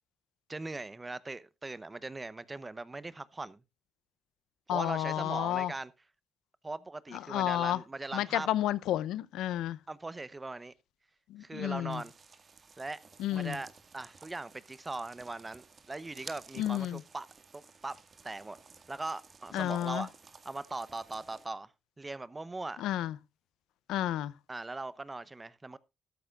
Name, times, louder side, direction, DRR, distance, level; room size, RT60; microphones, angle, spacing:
voice 1, 0.5-3.6 4.7-5.9 6.6-8.5 9.9-10.7 11.4-12.1 12.8-13.0 13.3-13.7 13.9-17.3 17.5-18.0 18.2-18.6 18.9-20.1 20.4-21.7 22.0-22.8 24.5-25.8, right 2 dB, 20° right, 0.9 m, -40 dB
voice 2, 4.7-5.7 7.1-7.8 8.1-9.8 11.3-12.0 13.2-13.6 16.6-17.0 19.5-20.1 22.8-23.2 23.9-24.3, left 13 dB, 90° left, 0.6 m, -31 dB
sound 1, 11.9-21.5, right 5 dB, 40° right, 1.9 m, -54 dB
13.0 x 13.0 x 2.4 m
cardioid pair, 90°, 0 cm